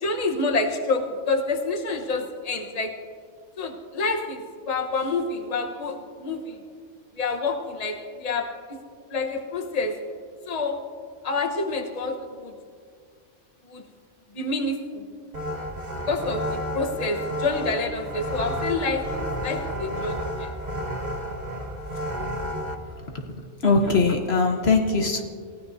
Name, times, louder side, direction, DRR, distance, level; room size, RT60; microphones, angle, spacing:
voice 1, 0.0-2.9 3.6-6.6 7.2-8.5 9.1-9.9 10.5-10.8 11.2-12.5 13.7-13.8 14.3-15.0 16.1-20.5, left 3 dB, 35° left, 2 dB, 1.2 m, -28 dB
sound 1, 15.3-22.7, equal, 40° right, 1.2 m, -31 dB
voice 2, 23.6-25.2, left 4 dB, 60° left, 4 dB, 1.3 m, -21 dB
28.0 x 15.5 x 2.7 m, 2.1 s
omnidirectional pair, 1.3 m